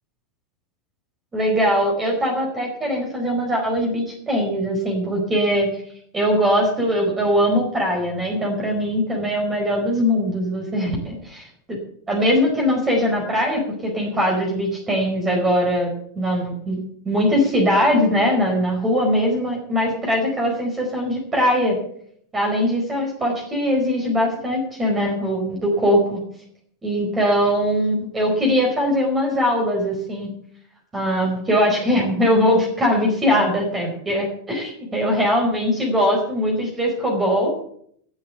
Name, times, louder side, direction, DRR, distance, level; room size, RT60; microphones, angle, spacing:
voice 1, 1.3-5.7 6.1-11.8 12.1-16.8 17.0-21.8 22.3-26.2 26.8-30.3 30.9-37.5, equal, 15° right, 0 dB, 4.7 m, -21 dB
14.5 x 8.3 x 8.1 m, 0.66 s
figure-of-eight pair, 90°, 0 cm